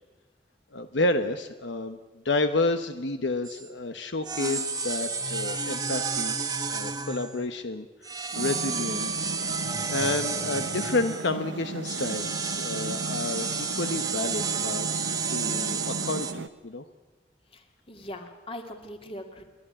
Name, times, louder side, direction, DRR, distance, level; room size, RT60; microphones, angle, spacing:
voice 1, 0.7-2.0 2.2-6.4 6.7-9.3 9.9-16.8, left 2 dB, 75° left, 8 dB, 1.1 m, -30 dB
sound 1, 3.5-3.7 4.3-7.4 8.0-11.3 11.8-16.3, right 5 dB, 20° right, 1.2 m, -31 dB
sound 2, 8.3-16.5, right 3 dB, 85° right, 0.9 m, -36 dB
voice 2, 17.5-19.4, left 1 dB, 30° left, 4 dB, 2.5 m, -41 dB
30.0 x 11.5 x 10.0 m, 1.2 s
head